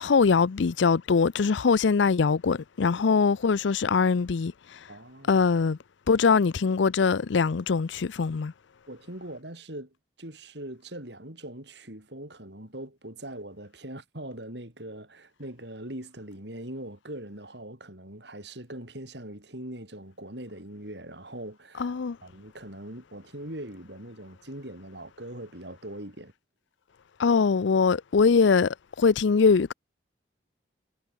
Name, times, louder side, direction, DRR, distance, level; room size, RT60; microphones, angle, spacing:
voice 1, 0.0-4.8 5.3-5.8 6.1-8.5 21.8-22.2 27.2-29.7, left 5 dB, 75° left, 0.5 m, -22 dB
voice 2, 4.9-5.5 8.9-21.9 22.2-26.3, right 1 dB, 65° right, 6.4 m, -41 dB
head